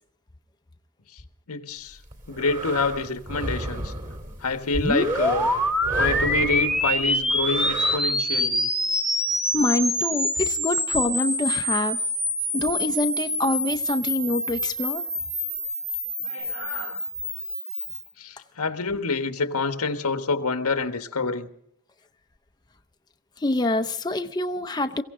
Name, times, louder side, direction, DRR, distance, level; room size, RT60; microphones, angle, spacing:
voice 1, 1.5-2.0 2.3-3.9 4.4-5.5 6.0-8.7 12.6-12.9 16.2-17.0 18.2-21.5, left 3 dB, 90° left, 8 dB, 1.4 m, -27 dB
sound 1, 1.9-8.0, right 2 dB, 35° right, 2.8 m, -33 dB
sound 2, 4.7-18.1, left 1 dB, 5° right, 1.1 m, -26 dB
voice 2, 9.5-12.0 12.5-15.0 23.4-25.0, left 2 dB, 20° left, 6 dB, 0.6 m, -26 dB
23.0 x 16.0 x 3.8 m, 0.70 s
head